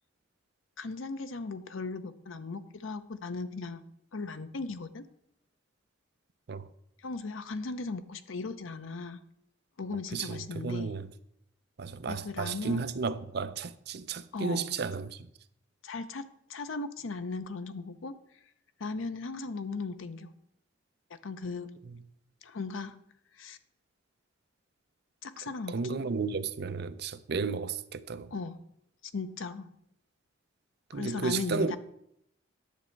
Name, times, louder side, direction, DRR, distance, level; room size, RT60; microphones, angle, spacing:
voice 1, 0.8-3.8 4.1-5.0 7.0-9.2 9.8-10.9 12.1-12.8 14.3-14.7 15.8-16.2 16.5-18.1 18.8-20.3 21.1-21.7 22.4-22.9 23.4-23.6 25.2-26.0 28.3-28.6 29.1-29.7 30.9-31.8, left 3 dB, 85° left, 0.7 m, -37 dB
voice 2, 10.1-11.1 11.8-15.3 21.9-22.0 25.4-28.3 30.9-31.8, right 4 dB, 55° right, 0.5 m, -33 dB
10.5 x 7.2 x 4.5 m
head